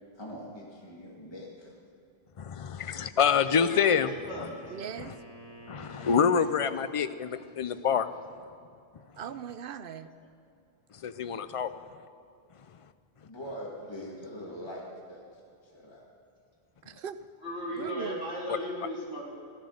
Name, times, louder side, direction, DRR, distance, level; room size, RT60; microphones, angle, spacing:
voice 1, 0.2-1.7 13.2-15.2 15.7-16.0, equal, 25° left, -3 dB, 1.9 m, -42 dB
voice 2, 2.4-4.1 4.4-4.5 5.7-8.1 10.9-11.7 12.8-12.9, left 7 dB, 45° left, 12 dB, 0.5 m, -26 dB
Wind instrument woodwind instrument, 3.2-7.1, right 1 dB, 20° right, 3.0 m, -51 dB
voice 3, 3.3-4.5 17.4-19.4, equal, 90° left, -7 dB, 4.2 m, -37 dB
voice 4, 4.7-5.1 9.2-10.1 16.8-17.2 17.7-18.2, right 8 dB, 65° right, 12 dB, 0.8 m, -39 dB
15.5 x 10.5 x 6.4 m, 2.5 s
omnidirectional pair, 1.0 m